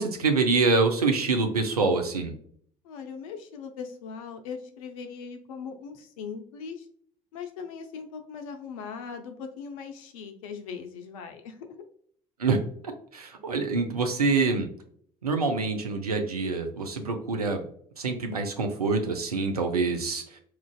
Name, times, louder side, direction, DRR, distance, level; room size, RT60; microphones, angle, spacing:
voice 1, 0.0-2.3 12.4-12.6 13.1-14.7 15.2-17.6 18.0-20.2, right 4 dB, 85° right, 4 dB, 0.4 m, -25 dB
voice 2, 2.8-6.9 7.3-11.8, left 6 dB, 65° left, 7 dB, 0.5 m, -39 dB
4.4 x 2.4 x 2.2 m, 0.63 s
figure-of-eight pair, 55°, 19 cm